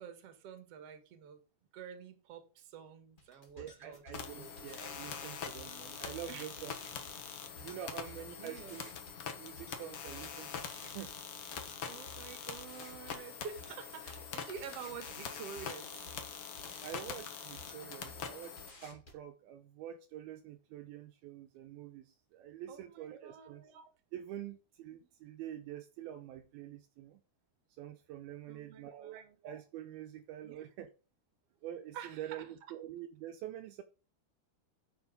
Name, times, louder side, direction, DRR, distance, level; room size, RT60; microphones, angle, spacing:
voice 1, 0.0-1.4 1.7-4.0 4.3-4.6 6.3-6.5 7.5-7.6 8.4-8.8 11.9-16.1 22.7-23.8 28.5-29.4 30.4-30.9 31.9-32.5, right 7 dB, 50° right, 2.2 m, -49 dB
sound 1, 3.2-19.2, left 1 dB, 25° left, 1.2 m, -56 dB
voice 2, 3.6-6.7 7.6-8.9 9.4-10.7 10.9-11.1 16.8-27.2 27.7-30.9 31.6-33.8, right 11 dB, 80° right, 2.5 m, -46 dB
sound 2, 4.1-18.7, left 7 dB, 65° left, 1.4 m, -44 dB
9.6 x 7.1 x 5.3 m
omnidirectional pair, 4.7 m